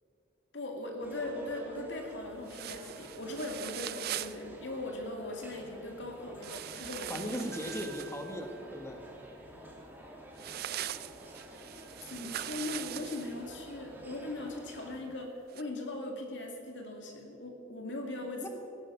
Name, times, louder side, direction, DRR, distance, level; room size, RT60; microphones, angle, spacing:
voice 1, 0.5-7.5 12.0-18.5, left 2 dB, 70° left, 2 dB, 2.4 m, -39 dB
sound 1, 1.0-15.0, right 1 dB, 10° right, 2.3 m, -50 dB
sound 2, 2.5-4.4 6.4-8.3 10.4-13.3 15.5-15.6, right 12 dB, 55° right, 0.4 m, -41 dB
voice 2, 7.1-9.0 18.4-18.5, equal, 15° left, 4 dB, 1.3 m, -38 dB
Piano, 7.5-9.6, right 6 dB, 75° right, 2.3 m, -53 dB
17.0 x 11.0 x 5.8 m, 2.8 s
head